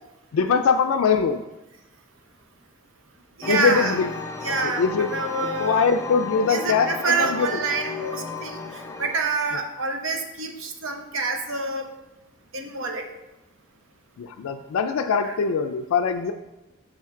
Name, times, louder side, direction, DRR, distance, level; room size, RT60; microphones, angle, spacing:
voice 1, 0.3-1.4 3.5-4.1 4.8-5.1 5.6-7.6 14.2-16.3, left 5 dB, 75° left, 5 dB, 0.3 m, -22 dB
sound 1, 3.4-9.2, left 4 dB, 15° left, 0.5 m, -34 dB
voice 2, 3.4-4.0 4.4-4.8 5.1-5.8 6.5-11.9 12.5-13.1 15.2-15.3, right 4 dB, 65° right, 4 dB, 0.8 m, -27 dB
6.4 x 4.4 x 3.6 m, 0.98 s
head